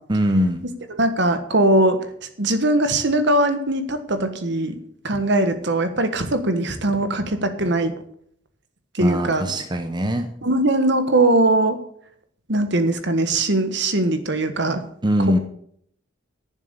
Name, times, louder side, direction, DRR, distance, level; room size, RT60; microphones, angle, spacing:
voice 1, 0.1-0.6 9.0-10.3 15.0-15.4, equal, 20° right, 6 dB, 0.8 m, -21 dB
voice 2, 0.9-2.0 2.4-4.8 5.0-7.9 8.9-9.4 10.4-11.8 12.5-14.8, right 2 dB, 60° right, 9 dB, 1.5 m, -20 dB
10.5 x 7.3 x 8.1 m, 0.66 s
head